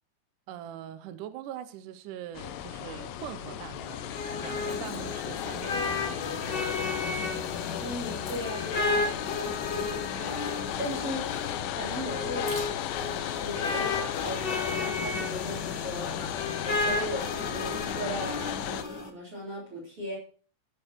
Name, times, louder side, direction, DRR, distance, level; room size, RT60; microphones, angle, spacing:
voice 1, 0.5-4.1 4.4-6.7, right 11 dB, 80° right, 10 dB, 1.8 m, -42 dB
sound 1, 2.3-18.8, left 11 dB, 85° left, 3.1 m, -35 dB
sound 2, 3.2-13.7, left 3 dB, 40° left, 4.2 m, -51 dB
sound 3, 3.8-19.1, left 3 dB, 60° left, 1.1 m, -33 dB
voice 2, 7.8-9.1 10.1-10.5 10.8-11.3 11.7-16.3 16.8-20.2, equal, 35° right, -3 dB, 4.8 m, -37 dB
16.0 x 8.3 x 4.6 m, 0.42 s
omnidirectional pair, 4.7 m